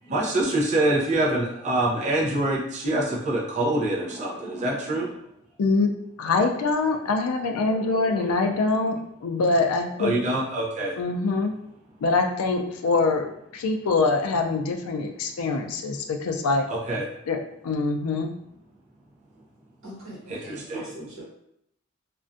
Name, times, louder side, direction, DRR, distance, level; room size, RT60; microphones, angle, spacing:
voice 1, 0.1-5.1 10.0-10.9 16.7-17.0 20.3-20.9, right 1 dB, 35° right, -4 dB, 0.5 m, -25 dB
voice 2, 5.6-5.9 6.2-10.2 11.0-11.5 12.0-16.7 17.3-17.4 17.6-18.3, left 3 dB, 85° left, 4 dB, 0.4 m, -24 dB
voice 3, 19.8-21.2, right 1 dB, 65° right, -7 dB, 1.2 m, -42 dB
2.4 x 2.2 x 2.5 m, 0.76 s
head